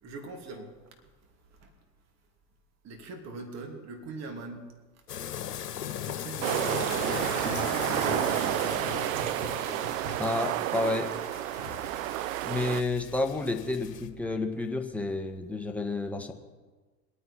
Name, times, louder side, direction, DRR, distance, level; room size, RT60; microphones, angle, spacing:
voice 1, 0.0-0.7 1.0-1.1 1.4-1.7 2.8-4.7 6.0-9.0, right 3 dB, 35° right, 4 dB, 2.7 m, -42 dB
sound 1, 5.1-14.1, left 10 dB, 75° left, 1.3 m, -39 dB
sound 2, 6.4-12.8, right 15 dB, 55° right, 0.5 m, -30 dB
Sink (filling or washing), 6.4-14.3, right 2 dB, 90° right, 2.1 m, -42 dB
voice 2, 10.2-11.1 12.4-16.3, left 2 dB, 5° left, 2 dB, 1.6 m, -30 dB
23.5 x 9.4 x 4.4 m, 1.3 s
hypercardioid pair, 90°, 48 cm